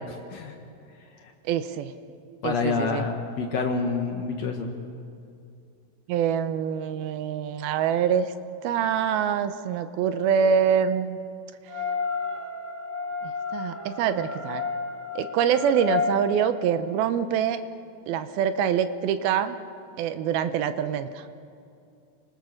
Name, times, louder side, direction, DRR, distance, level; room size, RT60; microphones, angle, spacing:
voice 1, 1.5-1.9 2.4-3.1 6.1-8.3 8.6-11.2 13.5-14.6 15.2-17.6 18.1-19.6 20.0-21.2, right 8 dB, 75° right, 10 dB, 2.3 m, -25 dB
voice 2, 2.4-4.8, left 4 dB, 70° left, 3 dB, 1.6 m, -28 dB
sound 1, 11.7-16.2, left 5 dB, 5° left, 3.7 m, -31 dB
29.5 x 20.0 x 6.4 m, 2.5 s
omnidirectional pair, 5.0 m